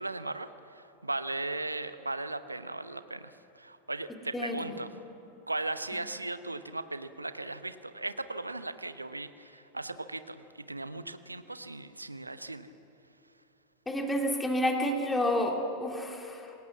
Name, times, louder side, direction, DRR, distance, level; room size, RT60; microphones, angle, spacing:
voice 1, 0.0-4.9 5.5-12.7, right 2 dB, 85° right, 12 dB, 0.9 m, -37 dB
voice 2, 13.9-16.5, left 1 dB, 10° left, 2 dB, 2.6 m, -29 dB
27.5 x 19.5 x 7.4 m, 2.9 s
figure-of-eight pair, 90°, 0 cm